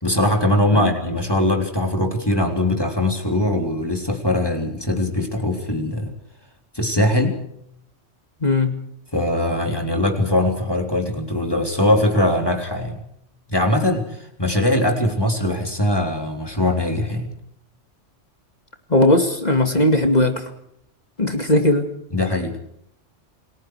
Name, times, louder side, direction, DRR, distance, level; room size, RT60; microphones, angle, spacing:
voice 1, 0.0-6.1 6.7-7.4 9.1-13.0 13.5-17.3 22.1-22.6, left 1 dB, 20° left, 3 dB, 3.8 m, -21 dB
voice 2, 8.4-8.8 18.9-20.5 21.2-21.9, left 2 dB, 35° left, 6 dB, 2.4 m, -18 dB
29.0 x 21.5 x 4.9 m, 0.73 s
omnidirectional pair, 1.3 m